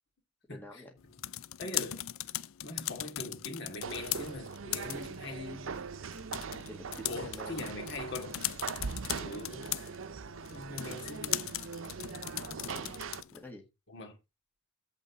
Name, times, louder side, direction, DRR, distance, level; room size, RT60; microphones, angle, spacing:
voice 1, 0.5-1.0 6.7-7.7 11.0-11.2 12.7-13.0 13.3-13.6, left 1 dB, 10° left, 1.7 m, -48 dB
sound 1, 1.0-13.5, left 14 dB, 85° left, 0.5 m, -39 dB
voice 2, 1.6-2.0 2.6-5.7 7.1-8.4 9.1-9.7 10.5-11.4 13.9-14.2, left 2 dB, 60° left, 2.4 m, -42 dB
sound 2, 3.8-13.2, right 5 dB, 75° right, 0.6 m, -41 dB
7.8 x 4.1 x 6.5 m
head